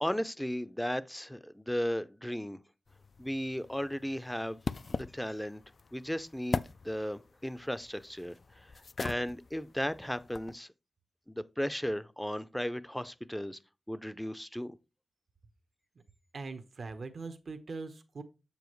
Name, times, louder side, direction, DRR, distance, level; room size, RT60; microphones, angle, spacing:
voice 1, 0.0-2.6 3.2-4.6 4.9-5.6 5.9-10.7 11.3-13.6 13.9-14.8, equal, 5° left, 0.5 m, -35 dB
sound 1, 2.9-10.6, left 4 dB, 60° left, 0.4 m, -41 dB
voice 2, 16.3-18.2, right 3 dB, 65° right, 1.0 m, -41 dB
7.5 x 7.1 x 3.1 m
cardioid pair, 65°, 0 cm